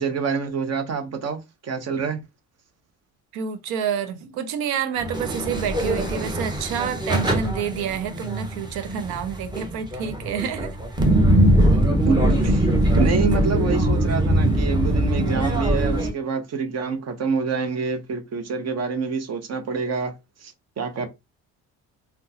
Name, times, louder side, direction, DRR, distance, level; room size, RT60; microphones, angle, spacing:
voice 1, 0.0-2.2 11.9-12.7 13.0-20.1 20.4-21.1, right 5 dB, 45° right, 0.9 m, -26 dB
voice 2, 3.3-10.7, right 8 dB, 85° right, 0.7 m, -28 dB
sound 1, 5.0-16.1, right 1 dB, 10° right, 0.9 m, -21 dB
3.6 x 2.2 x 2.8 m
cardioid pair, 90°, 37 cm